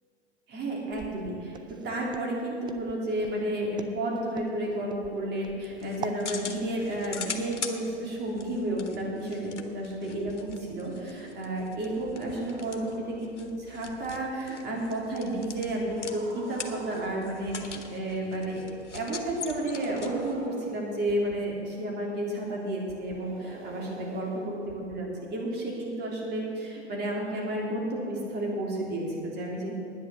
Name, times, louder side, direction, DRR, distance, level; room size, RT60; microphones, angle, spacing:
voice 1, 0.5-18.7 18.9-29.7, right 1 dB, 30° right, -2 dB, 3.6 m, -32 dB
Walk footsteps, 0.9-6.2, right 6 dB, 15° right, 0.5 m, -43 dB
sound 1, 5.6-20.5, left 5 dB, 85° left, 1.3 m, -43 dB
sound 2, 10.3-10.5 11.8-13.4 13.9-14.1 15.7-17.7 19.3-21.3 22.9-24.9, right 3 dB, 70° right, 2.5 m, -47 dB
10.5 x 9.8 x 7.4 m, 2.9 s
hypercardioid pair, 110°, 35 cm